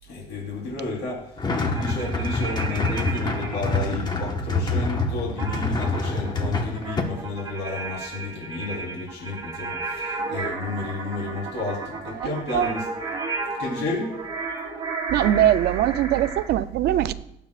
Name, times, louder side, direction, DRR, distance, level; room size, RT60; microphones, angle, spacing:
voice 1, 0.0-12.9 13.6-14.1, left 3 dB, 90° left, -3 dB, 3.9 m, -32 dB
sound 1, 1.4-7.0, left 2 dB, 25° left, 1.4 m, -26 dB
sound 2, 1.7-3.8 5.4-16.5, right 3 dB, 20° right, 3.5 m, -33 dB
voice 2, 12.2-12.7 15.1-17.1, right 12 dB, 70° right, 12 dB, 0.6 m, -21 dB
18.0 x 8.3 x 2.5 m, 0.74 s
cardioid pair, 110°, 17 cm